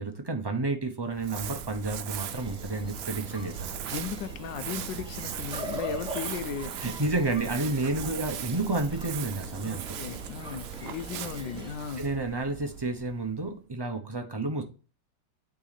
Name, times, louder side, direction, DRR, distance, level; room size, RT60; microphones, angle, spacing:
voice 1, 0.0-3.9 6.8-9.9 12.0-14.6, right 2 dB, 40° right, 0.3 m, -30 dB
Crumpling crinkling, 1.1-13.5, right 9 dB, 70° right, 1.2 m, -39 dB
sound 1, 2.3-11.7, right 1 dB, 5° right, 0.9 m, -42 dB
voice 2, 3.9-6.7 8.0-8.2 9.6-12.1, left 7 dB, 80° left, 1.4 m, -36 dB
8.9 x 3.9 x 4.1 m
omnidirectional pair, 2.0 m